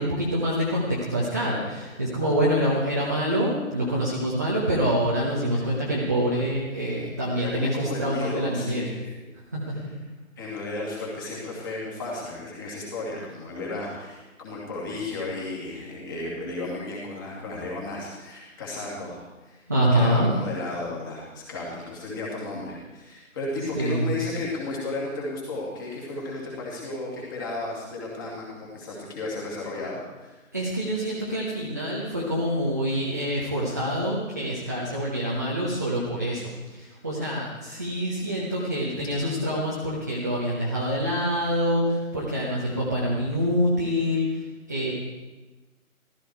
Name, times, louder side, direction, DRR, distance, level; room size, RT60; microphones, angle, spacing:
voice 1, 0.0-8.9 9.3-9.7 19.7-20.3 23.7-24.1 30.5-44.9, equal, 15° right, -6 dB, 0.8 m, -26 dB
voice 2, 7.3-9.1 10.4-19.6 19.9-30.4, left 2 dB, 15° left, -4 dB, 2.4 m, -34 dB
14.5 x 14.0 x 4.6 m, 1.2 s
figure-of-eight pair, 160°, 41 cm